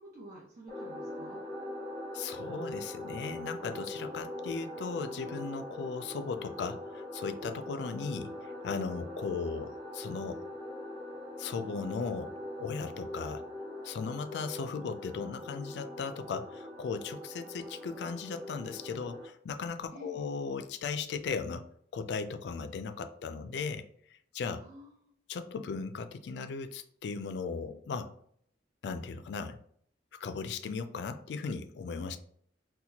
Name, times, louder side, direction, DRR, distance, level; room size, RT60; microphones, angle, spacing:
voice 1, 0.0-1.4 19.9-20.3 24.6-25.1, equal, 60° right, -7 dB, 0.9 m, -50 dB
sound 1, 0.7-19.3, left 1 dB, 35° right, 1.4 m, -42 dB
voice 2, 2.1-8.3 8.6-10.4 11.4-13.4 13.8-21.6 21.9-23.9 24.3-24.6 25.3-28.1 28.8-29.6 30.2-32.2, left 5 dB, 70° left, 9 dB, 0.3 m, -37 dB
4.2 x 2.2 x 2.8 m, 0.64 s
head